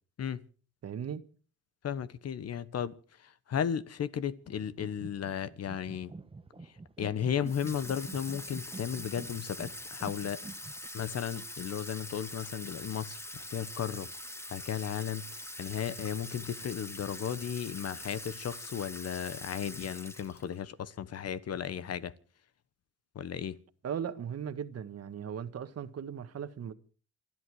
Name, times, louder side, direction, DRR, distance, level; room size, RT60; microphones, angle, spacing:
voice 1, 0.8-1.2 23.8-26.7, right 8 dB, 55° right, 1.6 m, -37 dB
voice 2, 1.8-6.1 6.6-10.4 10.9-14.1 14.5-22.1 23.1-23.6, left 8 dB, 55° left, 1.2 m, -35 dB
sound 1, 4.4-10.9, right 3 dB, 20° right, 1.1 m, -48 dB
Water tap faucet / Sink (filling or washing), 7.4-20.6, left 1 dB, 10° left, 1.6 m, -44 dB
28.0 x 10.5 x 4.8 m
cardioid pair, 90°, 30 cm